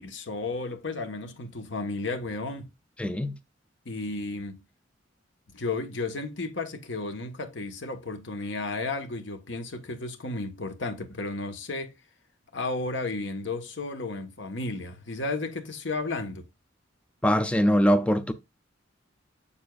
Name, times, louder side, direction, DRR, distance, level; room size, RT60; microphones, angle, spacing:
voice 1, 0.0-2.7 3.8-4.6 5.5-12.0 12.5-16.4, left 3 dB, 75° left, 1.2 m, -33 dB
voice 2, 3.0-3.4 17.2-18.3, equal, 5° left, 0.4 m, -22 dB
7.3 x 6.9 x 2.3 m
head